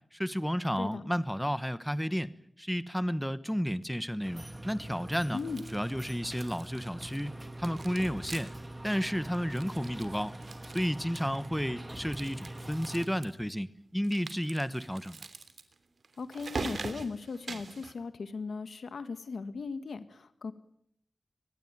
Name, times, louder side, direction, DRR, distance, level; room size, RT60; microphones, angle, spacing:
voice 1, 0.1-2.3 2.6-5.4 5.7-8.5 8.8-10.4 10.7-15.3, equal, ahead, 14 dB, 1.2 m, -32 dB
voice 2, 0.8-1.1 5.3-5.6 16.2-20.5, left 4 dB, 85° left, 10 dB, 1.8 m, -38 dB
sound 1, 4.2-13.1, right 1 dB, 15° right, 2.5 m, -44 dB
sound 2, 5.3-6.0 6.3-7.3 7.6-8.7 9.0-9.1 9.3-11.5 12.0-13.3 14.0-17.9, right 4 dB, 65° right, 3.1 m, -43 dB
24.5 x 21.0 x 9.1 m, 0.70 s
wide cardioid pair, 100°, 0 cm